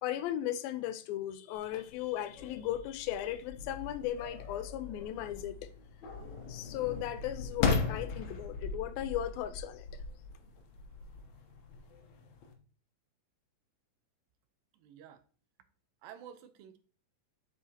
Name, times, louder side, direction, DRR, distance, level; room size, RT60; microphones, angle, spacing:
voice 1, 0.0-5.7 6.5-10.0, left 12 dB, 85° left, 2.5 m, -36 dB
sound 1, 1.6-12.5, left 4 dB, 65° left, 2.0 m, -38 dB
voice 2, 14.8-15.2 16.0-16.8, right 9 dB, 80° right, 2.4 m, -50 dB
7.7 x 6.7 x 2.8 m
omnidirectional pair, 4.1 m